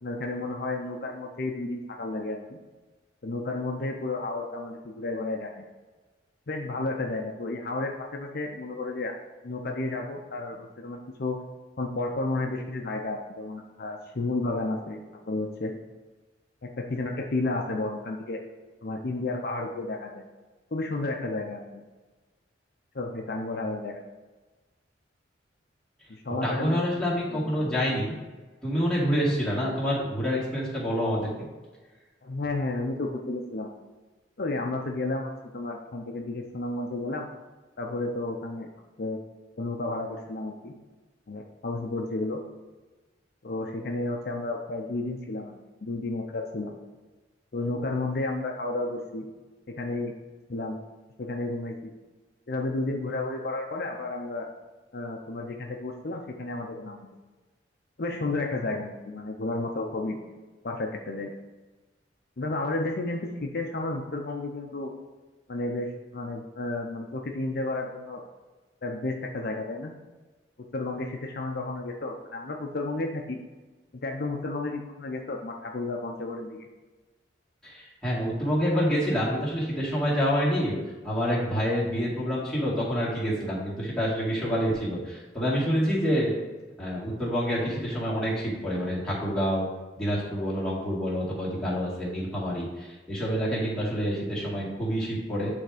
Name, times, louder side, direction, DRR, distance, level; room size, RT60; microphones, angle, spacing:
voice 1, 0.0-2.6 3.2-5.6 6.5-9.1 9.4-11.4 11.8-15.7 16.6-18.4 18.8-20.2 20.7-21.8 22.9-24.0 26.1-26.9 27.3-27.8 32.2-33.7 34.4-37.3 37.8-38.7 39.0-39.2 39.6-40.7 41.3-42.4 43.4-46.8 47.5-49.3 49.7-50.1 50.5-50.8 51.2-51.9 52.5-54.5 54.9-57.1 58.0-60.2 60.6-61.3 62.4-64.9 65.5-68.2 68.8-69.9 70.7-73.4 74.0-76.7, left 2 dB, 55° left, 1 dB, 0.6 m, -32 dB
voice 2, 26.4-28.1 28.6-31.3 77.6-80.8 81.0-86.4 86.8-89.7 90.0-95.5, equal, 5° left, -8 dB, 2.1 m, -27 dB
9.1 x 3.5 x 5.0 m, 1.2 s
head